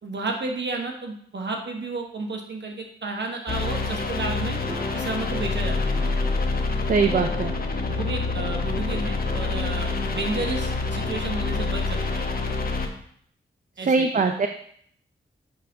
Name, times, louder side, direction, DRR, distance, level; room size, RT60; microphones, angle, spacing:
voice 1, 0.0-4.6 4.9-5.9 7.9-12.3 13.8-14.4, right 3 dB, 60° right, 2 dB, 1.2 m, -32 dB
sound 1, 3.5-12.9, left 3 dB, 45° left, 1.0 m, -27 dB
sound 2, 4.7-6.8 7.1-8.1 8.3-8.4 9.3-10.1, right 1 dB, 10° right, 1.2 m, -39 dB
voice 2, 6.9-7.5 13.9-14.5, right 4 dB, 40° right, 5 dB, 0.5 m, -21 dB
9.1 x 3.4 x 3.9 m, 0.64 s
cardioid pair, 50°, 21 cm